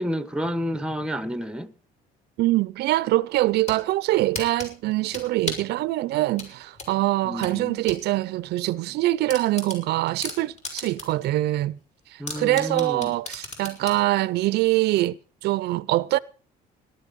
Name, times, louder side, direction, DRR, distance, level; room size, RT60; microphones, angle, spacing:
voice 1, 0.0-1.7 7.2-7.8 12.2-13.1, equal, 5° right, 1.1 m, -30 dB
voice 2, 2.4-11.8 12.1-16.2, right 17 dB, 75° right, 0.6 m, -24 dB
sound 1, 3.4-3.8 4.3-5.7 6.4-8.0 8.4-8.5 8.9-9.0 9.3-11.2 11.6-11.7 12.3-14.0, left 3 dB, 40° left, 5.4 m, -35 dB
17.5 x 11.5 x 5.3 m
cardioid pair, 110°, 17 cm